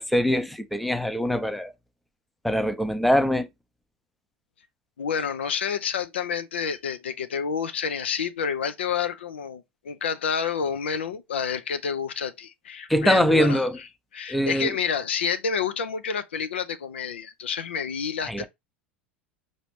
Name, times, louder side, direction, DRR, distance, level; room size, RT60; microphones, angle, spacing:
voice 1, 0.0-1.7 2.4-3.5 12.9-13.8 14.3-14.7 18.3-18.4, equal, ahead, 0.5 m, -23 dB
voice 2, 5.0-18.5, left 6 dB, 75° left, 0.4 m, -29 dB
4.9 x 2.6 x 3.1 m
figure-of-eight pair, 80°, 6 cm